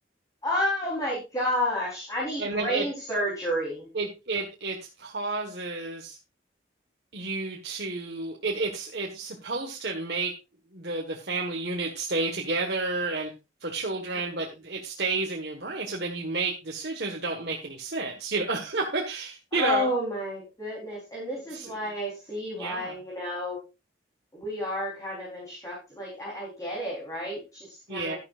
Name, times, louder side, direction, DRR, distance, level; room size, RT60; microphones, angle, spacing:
voice 1, 0.4-3.9 14.1-14.4 19.5-23.6 24.3-28.2, left 1 dB, 20° left, -4 dB, 4.2 m, -31 dB
voice 2, 2.4-2.8 3.9-6.2 7.1-10.3 10.7-13.3 13.6-19.9 21.5-21.9 22.5-23.0 27.9-28.2, right 3 dB, 60° right, 0 dB, 1.7 m, -31 dB
12.0 x 11.5 x 2.6 m, 0.27 s
head